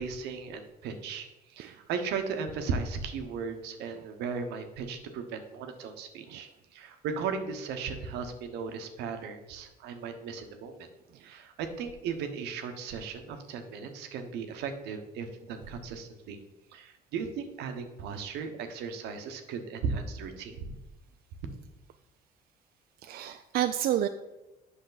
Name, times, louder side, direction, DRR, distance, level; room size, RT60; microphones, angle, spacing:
voice 1, 0.0-10.9 11.1-16.4 16.7-20.7, right 5 dB, 85° right, 7 dB, 1.0 m, -36 dB
voice 2, 23.0-24.1, right 11 dB, 60° right, 8 dB, 0.4 m, -29 dB
8.1 x 6.1 x 4.0 m, 1.0 s
cardioid pair, 110°, 17 cm